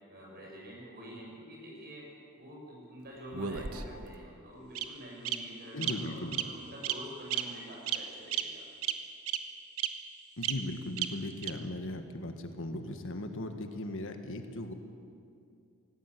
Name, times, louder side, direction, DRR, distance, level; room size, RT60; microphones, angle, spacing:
voice 1, 0.1-2.0 2.4-8.7, equal, 45° right, -2 dB, 7.0 m, -47 dB
Bird vocalization bird call bird song, 3.3-4.1 4.7-4.8 5.2-5.3 5.8-5.9 6.3-6.5 6.8-7.0 7.3-7.4 7.9-8.0 8.3-8.4 8.8-8.9 9.3-9.4 9.8-9.9 10.4-10.5 11.0-11.1 11.4-11.5, right 11 dB, 75° right, 1.2 m, -31 dB
voice 2, 5.7-6.4 10.4-14.7, left 1 dB, 60° left, 6 dB, 1.6 m, -38 dB
18.0 x 18.0 x 8.4 m, 2.4 s
head